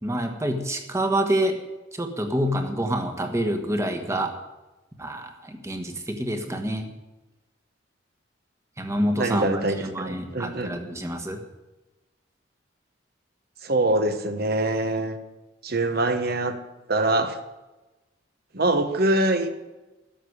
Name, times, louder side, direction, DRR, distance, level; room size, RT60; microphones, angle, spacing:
voice 1, 0.0-1.6 1.9-4.3 5.0-6.9 8.8-11.4, right 1 dB, 15° right, 5 dB, 1.4 m, -27 dB
voice 2, 9.2-10.7 13.6-15.2 15.6-16.6 16.9-17.4 18.5-19.5, right 2 dB, 50° right, 8 dB, 1.2 m, -24 dB
12.5 x 6.9 x 9.7 m, 1.1 s
head